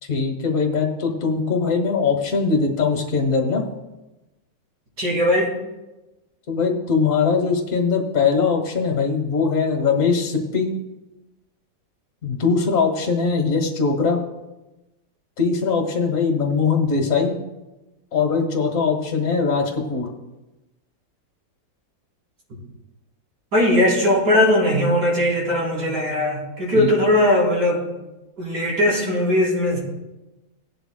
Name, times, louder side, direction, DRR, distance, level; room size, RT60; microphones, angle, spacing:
voice 1, 0.0-3.6 6.5-10.7 12.2-14.2 15.4-17.4 18.1-20.1 26.7-26.9, left 5 dB, 50° left, 1 dB, 1.5 m, -21 dB
voice 2, 5.0-5.5 23.5-27.9 28.4-29.8, left 1 dB, 70° right, -4 dB, 4.3 m, -19 dB
18.0 x 11.0 x 2.2 m, 1.0 s
omnidirectional pair, 1.9 m